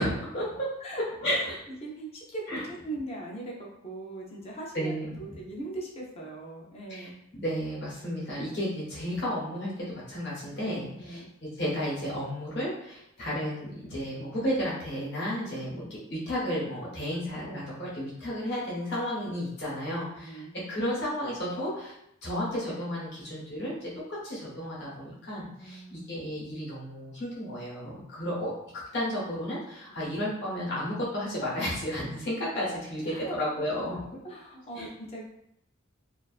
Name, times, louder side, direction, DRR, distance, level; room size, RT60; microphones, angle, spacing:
voice 1, 0.0-0.7 1.2-1.6 2.5-2.6 4.7-5.4 6.9-11.2 11.6-21.9 22.2-34.0 34.7-34.9, equal, 55° left, -6 dB, 0.8 m, -33 dB
voice 2, 0.8-1.5 1.8-7.2 10.9-11.3 15.7-15.9 20.1-20.5 25.6-26.3 30.0-30.1 33.1-33.4 34.2-35.5, right 2 dB, 30° left, -2 dB, 0.4 m, -40 dB
2.3 x 2.3 x 2.3 m, 0.79 s
head